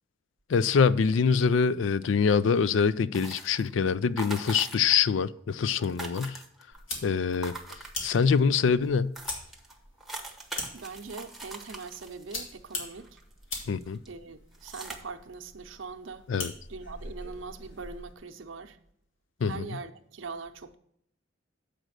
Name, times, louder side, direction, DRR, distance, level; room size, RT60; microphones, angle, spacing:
voice 1, 0.5-6.4 7.0-7.6 8.0-9.1 13.7-14.0 16.3-16.5 19.4-19.6, left 6 dB, 70° left, 0.4 m, -24 dB
sound 1, 3.1-3.7 4.2-5.1 5.4-5.5 5.7-6.8 7.3-8.4 8.8-8.9 9.1-13.4 13.8-14.1 14.5-15.0, right 2 dB, ahead, 1.0 m, -42 dB
sound 2, 6.7-18.1, left 2 dB, 90° left, 2.5 m, -42 dB
voice 2, 10.7-13.2 14.1-16.3 16.7-18.8 19.4-20.8, right 4 dB, 85° right, 0.7 m, -42 dB
7.6 x 5.0 x 6.4 m
head